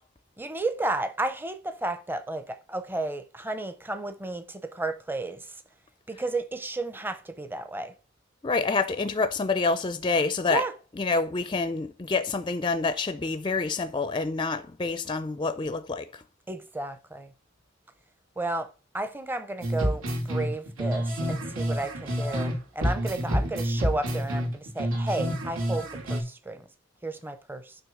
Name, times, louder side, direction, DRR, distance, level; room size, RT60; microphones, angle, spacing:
voice 1, 0.4-5.5 6.1-7.9 10.5-10.7 16.5-17.3 18.4-18.7 18.9-26.6 27.0-27.8, right 2 dB, 10° right, 0.7 m, -32 dB
voice 2, 8.4-10.6 11.0-16.2, left 4 dB, 25° left, 0.4 m, -27 dB
sound 1, 19.6-22.5 22.8-26.2, equal, 85° right, 2.3 m, -28 dB
9.2 x 3.1 x 6.4 m
head